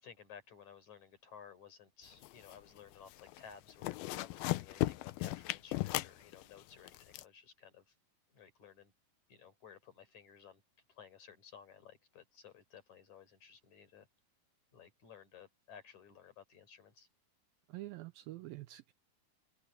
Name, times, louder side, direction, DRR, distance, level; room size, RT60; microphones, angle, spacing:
voice 1, 0.0-7.9 8.3-8.9 9.3-10.6 10.9-14.1 14.7-17.1, left 7 dB, 45° left, 5.3 m, -56 dB
sound 1, 2.1-2.8 3.1-3.4 3.7-7.2, left 18 dB, 80° left, 2.3 m, -36 dB
voice 2, 17.7-18.9, right 17 dB, 85° right, 2.2 m, -46 dB
open air
omnidirectional pair, 4.7 m